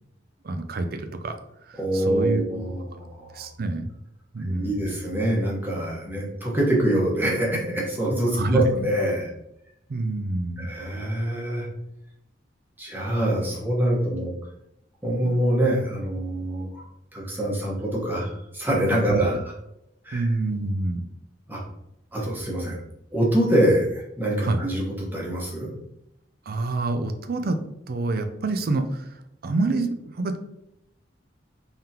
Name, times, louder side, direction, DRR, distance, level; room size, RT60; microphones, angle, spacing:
voice 1, 0.4-1.4 1.7-2.4 3.3-3.9 4.3-5.0 8.3-8.6 9.9-10.7 19.1-19.2 20.1-21.0 24.4-24.6 26.5-27.6 27.9-29.2 29.4-30.4, right 2 dB, 55° right, 8 dB, 0.5 m, -27 dB
voice 2, 1.8-3.5 4.5-9.3 10.6-11.7 12.8-14.3 15.0-16.8 17.1-19.4 20.0-20.2 21.5-21.6 22.1-22.8 23.1-25.7, right 1 dB, 10° right, -4 dB, 1.1 m, -25 dB
3.8 x 3.5 x 2.8 m, 0.83 s
head